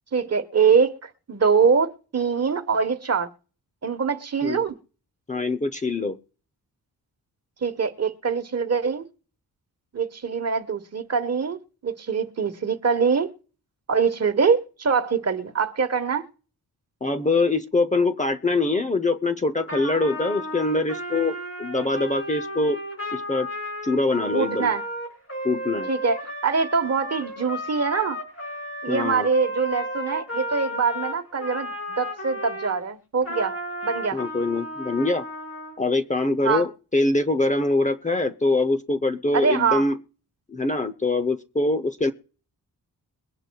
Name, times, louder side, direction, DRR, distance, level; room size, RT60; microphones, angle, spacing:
voice 1, 0.1-3.3 3.8-4.8 7.6-9.1 9.9-13.3 13.9-16.3 24.3-24.8 25.9-28.2 28.8-33.6 33.8-34.2 36.4-36.7 39.3-39.8, right 5 dB, 45° right, 1.2 m, -23 dB
voice 2, 5.3-6.2 17.0-22.8 23.1-23.5 23.8-24.7 25.4-25.9 28.9-29.3 34.1-35.2 35.8-40.0 40.5-42.1, left 2 dB, 20° left, 0.7 m, -24 dB
Trumpet, 19.7-32.8 33.2-35.8, equal, 40° left, 5.1 m, -33 dB
22.5 x 9.9 x 2.3 m
wide cardioid pair, 105°, 37 cm